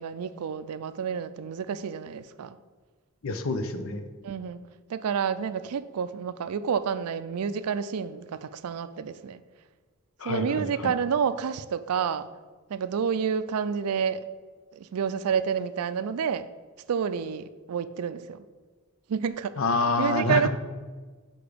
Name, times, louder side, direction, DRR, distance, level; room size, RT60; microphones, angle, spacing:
voice 1, 0.0-2.6 4.2-4.6 4.9-9.4 10.2-12.3 12.7-14.3 14.7-16.5 16.9-18.4 19.1-19.6 20.0-20.5, right 7 dB, 80° right, 13 dB, 0.4 m, -29 dB
voice 2, 3.2-4.1 10.2-10.9 19.6-20.5, left 3 dB, 60° left, 8 dB, 0.7 m, -27 dB
6.9 x 4.6 x 5.0 m, 1.4 s
head